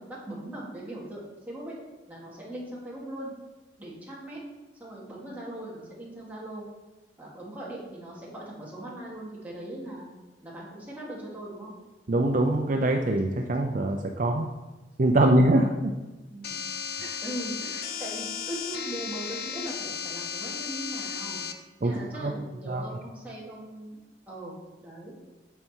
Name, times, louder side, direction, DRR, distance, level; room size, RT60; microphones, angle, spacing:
voice 1, 0.0-1.8 2.1-3.3 3.8-4.4 4.8-6.7 7.2-10.1 10.4-11.7 16.3-16.6 17.2-21.4 21.8-24.0 24.3-25.1, right 1 dB, 10° right, -6 dB, 2.8 m, -39 dB
voice 2, 12.1-14.5 15.0-15.9 17.0-17.1 21.8-21.9 22.2-22.3 22.7-22.8, right 1 dB, 45° right, 3 dB, 0.6 m, -23 dB
sound 1, 16.4-21.5, left 7 dB, 60° left, 0.7 m, -35 dB
9.0 x 6.7 x 4.6 m, 1.2 s
head